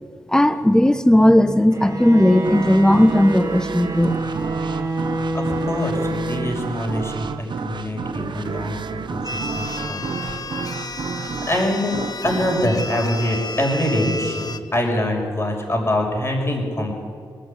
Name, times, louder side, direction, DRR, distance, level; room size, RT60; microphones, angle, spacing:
voice 1, 0.3-4.2, left 1 dB, 10° left, 10 dB, 1.5 m, -16 dB
Bowed string instrument, 1.7-7.1, right 2 dB, 35° right, 3.0 m, -27 dB
sound 1, 2.4-13.9, right 5 dB, 60° right, 1.1 m, -31 dB
voice 2, 5.3-10.3 10.6-11.0 11.5-11.9 12.2-17.0, left 1 dB, 30° left, 1 dB, 5.9 m, -24 dB
sound 2, 9.2-14.6, left 3 dB, 45° left, 1.2 m, -32 dB
19.5 x 14.5 x 9.1 m, 2.2 s
supercardioid pair, 45°, 9 cm